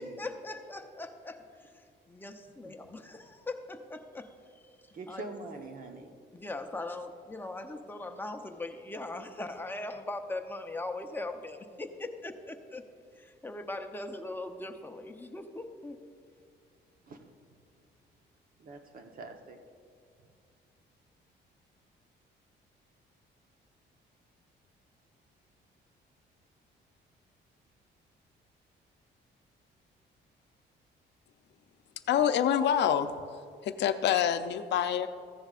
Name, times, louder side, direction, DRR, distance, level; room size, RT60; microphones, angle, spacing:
voice 1, 0.0-5.2 6.3-12.9 13.2-16.0, left 2 dB, 10° left, 5 dB, 0.7 m, -40 dB
voice 2, 4.9-6.2 17.1-17.2 18.6-19.6, right 3 dB, 50° right, 5 dB, 1.0 m, -44 dB
voice 3, 32.1-33.1 33.6-35.1, left 9 dB, 65° left, 10 dB, 0.6 m, -26 dB
15.0 x 10.0 x 2.5 m, 2.2 s
cardioid pair, 120°, 19 cm